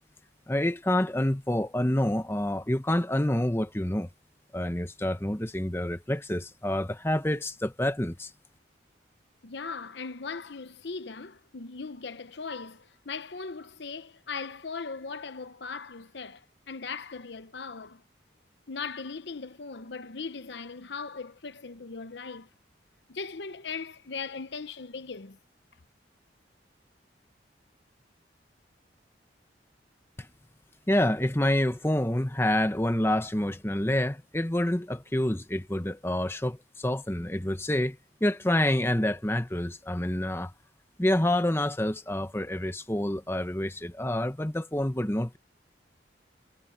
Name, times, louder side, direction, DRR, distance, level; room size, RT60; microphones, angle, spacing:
voice 1, 0.5-4.1 4.5-8.3 30.2-30.3 30.9-40.5 41.0-45.4, left 1 dB, 15° left, 1.0 m, -27 dB
voice 2, 9.4-18.0 18.7-22.5 23.1-25.4, left 4 dB, 70° left, 0.8 m, -39 dB
head